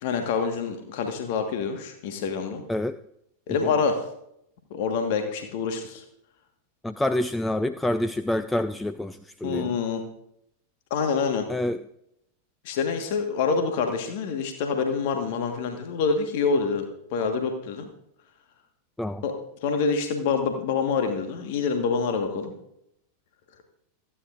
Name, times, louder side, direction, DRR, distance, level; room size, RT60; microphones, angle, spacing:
voice 1, 0.0-2.6 3.5-4.0 4.7-6.0 9.4-10.0 10.9-11.5 12.6-17.9 19.2-19.3 19.6-22.5, left 5 dB, 50° left, 5 dB, 1.4 m, -26 dB
voice 2, 6.8-9.8 11.5-11.8 19.0-19.2, left 1 dB, 5° left, 11 dB, 0.4 m, -27 dB
27.0 x 9.9 x 2.5 m, 0.78 s
figure-of-eight pair, 90°, 0 cm